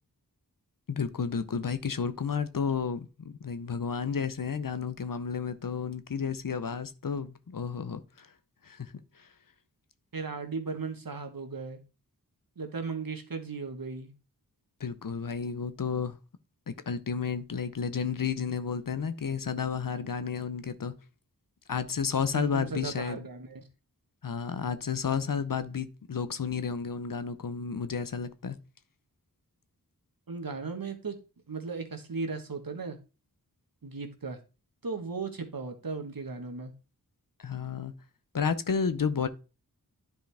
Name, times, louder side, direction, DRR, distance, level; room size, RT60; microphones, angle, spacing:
voice 1, 0.9-8.3 8.6-8.9 9.2-9.3 14.8-16.2 16.7-20.9 21.7-23.3 24.2-28.6 37.4-37.9 38.3-39.3, left 6 dB, 60° left, 0.7 m, -32 dB
voice 2, 10.1-11.8 12.6-14.1 22.3-23.6 30.3-31.2 31.5-33.0 33.8-34.4 34.8-36.7, right 4 dB, 65° right, 1.4 m, -36 dB
10.5 x 4.8 x 3.4 m
wide cardioid pair, 60°, 37 cm